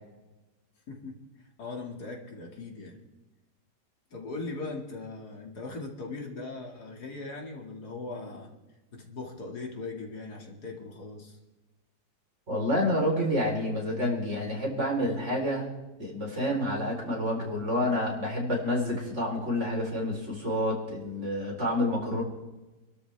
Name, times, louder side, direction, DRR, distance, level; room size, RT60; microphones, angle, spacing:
voice 1, 0.9-1.2 1.6-3.0 4.1-8.5 8.9-11.4, left 3 dB, 65° left, 0 dB, 2.7 m, -39 dB
voice 2, 12.5-15.7 16.0-22.2, left 1 dB, 40° right, -2 dB, 4.2 m, -28 dB
27.0 x 13.0 x 3.4 m, 1.1 s
omnidirectional pair, 1.8 m